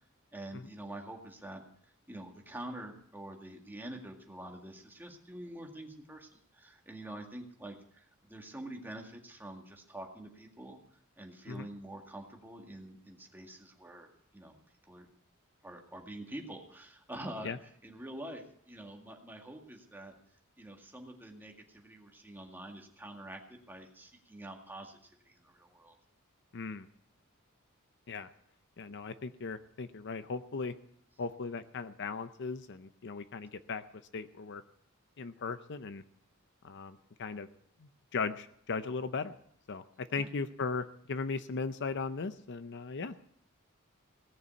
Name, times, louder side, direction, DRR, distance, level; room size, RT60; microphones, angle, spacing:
voice 1, 0.3-1.6 2.1-10.8 11.2-14.6 14.9-15.1 15.6-20.1 20.6-25.9 40.1-40.3, right 1 dB, 10° right, 1 dB, 1.9 m, -46 dB
voice 2, 26.5-26.9 28.1-28.3 28.8-30.7 31.2-33.8 34.1-34.6 35.2-36.0 36.6-37.5 38.1-39.4 39.7-43.2, left 4 dB, 55° left, 11 dB, 0.6 m, -37 dB
17.5 x 6.8 x 8.3 m, 0.66 s
head